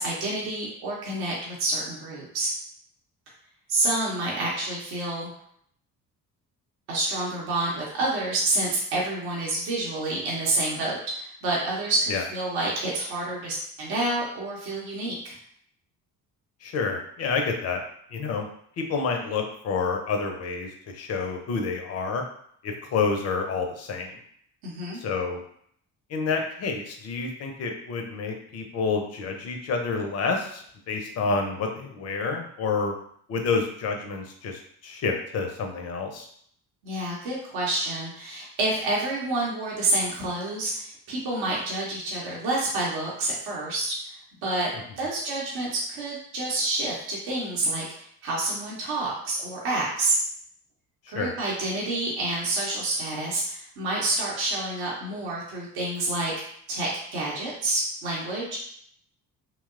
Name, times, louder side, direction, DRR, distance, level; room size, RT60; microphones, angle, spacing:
voice 1, 0.0-2.5 3.7-5.3 6.9-15.4 24.6-25.0 36.8-44.7 45.0-50.2 51.1-56.3 56.7-58.7, right 2 dB, 55° right, -4 dB, 0.8 m, -28 dB
voice 2, 16.6-17.8 18.1-18.5 18.8-22.2 22.6-24.2 24.9-25.4 26.1-32.9 33.3-36.3 51.1-51.3, left 4 dB, 35° left, 3 dB, 0.5 m, -29 dB
2.8 x 2.0 x 2.4 m, 0.65 s
figure-of-eight pair, 50°, 47 cm